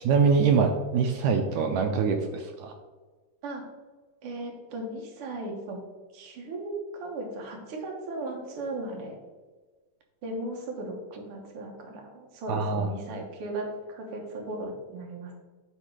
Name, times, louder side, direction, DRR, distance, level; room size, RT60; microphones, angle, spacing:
voice 1, 0.1-2.7 12.5-12.9, right 5 dB, 80° right, 4 dB, 1.7 m, -24 dB
voice 2, 4.2-5.8 6.1-9.2 10.2-15.4, right 2 dB, 55° right, 1 dB, 1.8 m, -37 dB
9.9 x 3.7 x 4.7 m, 1.3 s
omnidirectional pair, 3.9 m